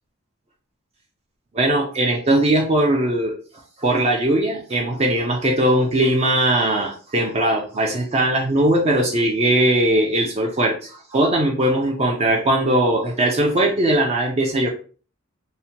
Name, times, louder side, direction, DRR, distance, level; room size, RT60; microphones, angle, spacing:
voice 1, 1.5-3.3 3.8-14.7, right 1 dB, 30° right, 0 dB, 0.4 m, -19 dB
2.7 x 2.1 x 2.8 m, 0.39 s
head